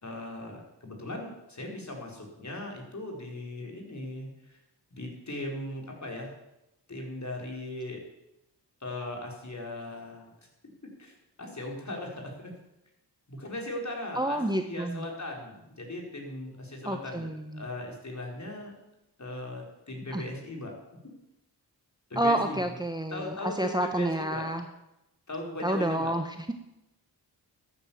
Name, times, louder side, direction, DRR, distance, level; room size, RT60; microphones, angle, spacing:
voice 1, 0.0-4.6 4.9-6.3 6.9-8.0 8.8-10.3 11.0-12.5 13.3-17.3 17.5-18.7 19.2-20.7 22.1-22.7 23.1-24.4 25.3-26.1, left 1 dB, 40° left, 0 dB, 4.6 m, -38 dB
voice 2, 14.2-15.0 16.8-17.7 20.1-20.2 22.2-24.7 25.6-26.5, right 1 dB, 10° right, 6 dB, 1.0 m, -29 dB
14.0 x 9.6 x 7.1 m, 0.90 s
cardioid pair, 65°, 42 cm